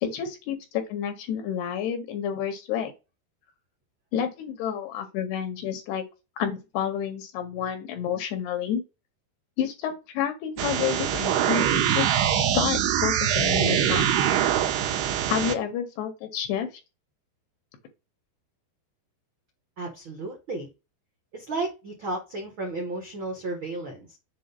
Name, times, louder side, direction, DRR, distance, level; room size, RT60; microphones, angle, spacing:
voice 1, 0.0-2.9 4.1-6.0 6.4-8.8 9.6-14.1 15.3-16.7, left 9 dB, 75° left, 3.3 m, -29 dB
sound 1, 10.6-15.6, right 10 dB, 75° right, 2.9 m, -23 dB
voice 2, 19.8-20.7 21.3-24.2, right 2 dB, 60° right, 1.3 m, -33 dB
7.7 x 2.6 x 5.3 m
omnidirectional pair, 5.0 m